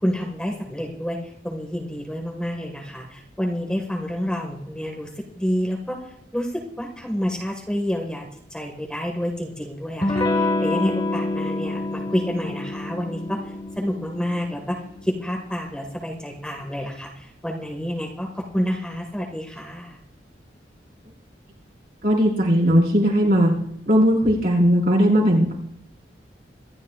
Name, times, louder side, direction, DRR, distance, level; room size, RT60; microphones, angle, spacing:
voice 1, 0.0-6.0 6.3-6.5 6.8-8.2 8.5-14.8 15.0-20.0, equal, 5° left, 0 dB, 1.7 m, -29 dB
Electric guitar / Strum, 10.0-15.4, left 2 dB, 25° left, 1.6 m, -27 dB
voice 2, 22.0-23.5 23.9-25.5, equal, 55° right, -3 dB, 4.8 m, -18 dB
26.0 x 12.5 x 2.5 m, 0.76 s
head